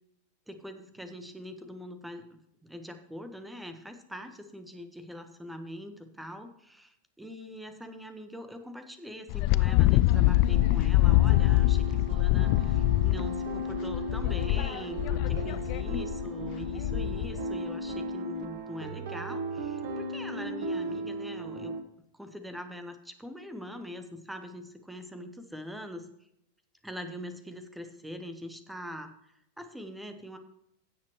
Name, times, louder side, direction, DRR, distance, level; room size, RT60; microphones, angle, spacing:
voice 1, 0.5-21.8 22.1-26.1 26.8-30.4, equal, 5° right, 8 dB, 1.2 m, -43 dB
Wind, 9.3-17.4, left 17 dB, 45° left, 0.3 m, -25 dB
sound 1, 10.1-21.8, equal, 55° right, 1.3 m, -36 dB
16.0 x 7.3 x 3.1 m, 0.78 s
figure-of-eight pair, 90°, 0 cm